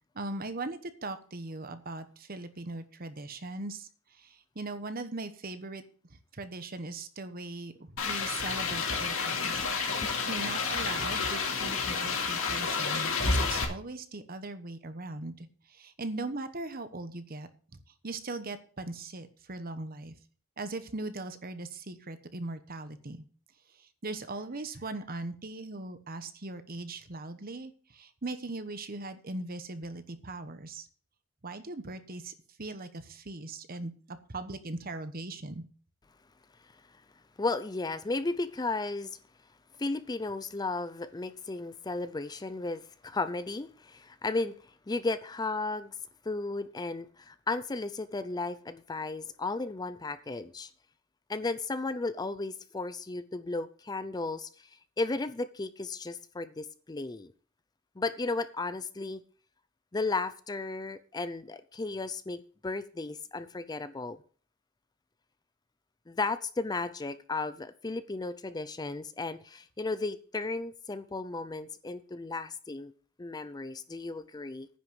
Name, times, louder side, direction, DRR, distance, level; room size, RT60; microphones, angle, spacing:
voice 1, 0.1-3.9 4.2-4.3 4.5-5.8 6.3-7.7 8.0-9.6 10.3-15.5 15.7-17.5 18.0-20.1 20.6-23.2 24.0-30.8 31.4-33.9 34.3-35.6, right 2 dB, 45° right, 1.1 m, -39 dB
sound 1, 8.0-13.6, left 4 dB, 70° left, 2.5 m, -30 dB
voice 2, 37.4-39.2 39.8-45.9 46.2-50.7 51.3-54.7 55.0-57.3 58.0-59.2 59.9-64.2 66.1-72.9 73.2-74.7, left 3 dB, 20° left, 0.5 m, -34 dB
10.0 x 6.1 x 7.8 m
head